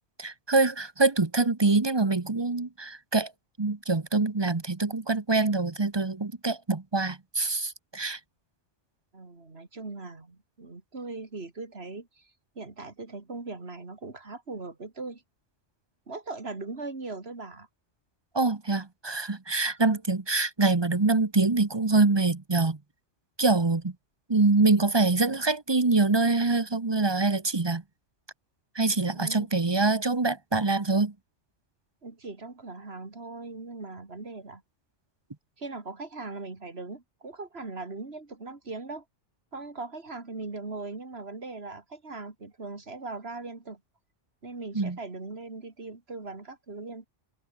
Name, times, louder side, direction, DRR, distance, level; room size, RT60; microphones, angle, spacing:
voice 1, 0.2-3.3 3.6-8.2 18.3-22.8 23.4-23.9 24.3-27.8 28.7-31.1 44.7-45.0, right 3 dB, 25° right, 1.0 m, -25 dB
voice 2, 9.1-15.2 16.1-17.7 29.1-29.5 32.0-34.6 35.6-39.0 39.5-43.8 44.4-47.1, right 3 dB, 55° right, 3.1 m, -39 dB
omnidirectional pair, 1.2 m